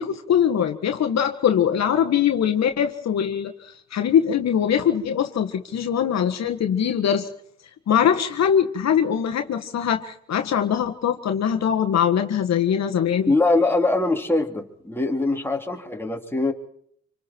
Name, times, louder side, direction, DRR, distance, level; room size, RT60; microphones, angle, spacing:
voice 1, 0.0-7.3 7.9-13.3, left 8 dB, 60° left, 6 dB, 1.6 m, -22 dB
voice 2, 13.3-16.5, left 2 dB, 5° left, 1 dB, 3.5 m, -22 dB
27.0 x 24.5 x 4.6 m, 0.67 s
cardioid pair, 90°, 30 cm